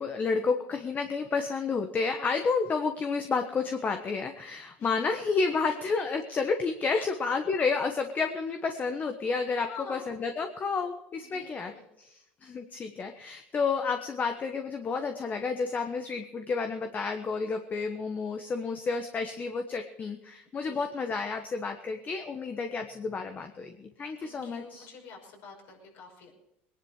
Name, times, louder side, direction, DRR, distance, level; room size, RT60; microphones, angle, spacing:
voice 1, 0.0-11.7 12.0-24.9, left 4 dB, 30° left, 6 dB, 1.2 m, -30 dB
voice 2, 9.7-10.1 11.2-11.8 20.6-20.9 24.2-26.3, left 4 dB, 60° left, 0 dB, 5.6 m, -46 dB
20.0 x 11.0 x 4.9 m, 0.82 s
supercardioid pair, 95°, 6 cm